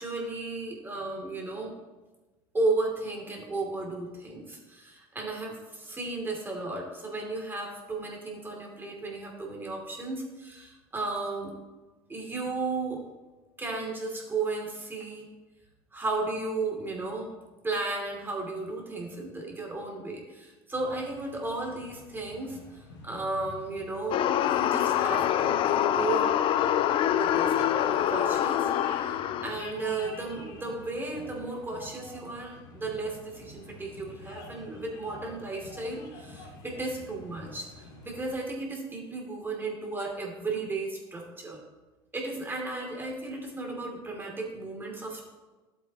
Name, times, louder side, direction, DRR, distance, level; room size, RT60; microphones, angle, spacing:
voice 1, 0.0-1.8 2.5-11.5 12.1-13.0 13.6-15.3 15.9-17.3 17.6-22.6 23.0-26.3 27.1-28.7 29.0-41.6 42.1-45.3, right 3 dB, 15° right, -1 dB, 2.9 m, -34 dB
sound 1, 20.7-38.3, left 2 dB, 75° left, 2.5 m, -48 dB
sound 2, 24.1-29.6, left 11 dB, 45° left, 0.4 m, -25 dB
12.5 x 8.0 x 3.0 m, 1.2 s
hypercardioid pair, 90°, 12 cm